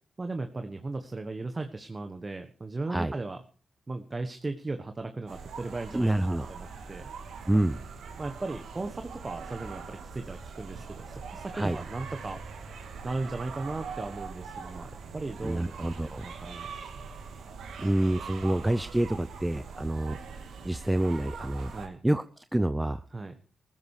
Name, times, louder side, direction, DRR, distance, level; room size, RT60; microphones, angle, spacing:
voice 1, 0.2-3.4 3.9-7.1 8.2-12.4 13.0-15.7 16.0-16.7 17.0-17.1 21.7-22.0 23.1-23.3, right 3 dB, 30° right, 7 dB, 1.4 m, -37 dB
sound 1, 5.3-21.9, right 5 dB, 80° right, 2.7 m, -42 dB
voice 2, 5.9-6.5 7.5-7.8 11.5-11.8 15.4-16.3 17.8-20.2 20.6-21.7 22.0-23.0, right 1 dB, 10° right, 12 dB, 0.7 m, -27 dB
15.5 x 13.5 x 4.9 m, 0.39 s
cardioid pair, 60°, 0 cm